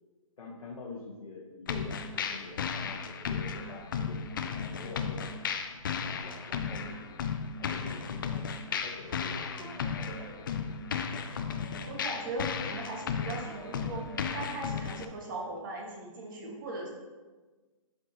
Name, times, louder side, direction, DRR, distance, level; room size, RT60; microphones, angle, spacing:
voice 1, 0.4-5.4 5.9-7.2 7.6-8.5 8.7-10.5 10.8-11.2, left 3 dB, 90° left, -5 dB, 1.3 m, -46 dB
sound 1, 1.7-15.0, left 6 dB, 35° left, 0.4 m, -35 dB
Cat, 7.6-8.3 9.0-10.7 11.2-12.5 13.1-14.6, right 4 dB, 70° right, 0.9 m, -52 dB
voice 2, 11.9-14.0 14.3-16.9, right 2 dB, 35° right, -1 dB, 1.6 m, -39 dB
11.5 x 5.1 x 2.8 m, 1.3 s
hypercardioid pair, 165°, 18 cm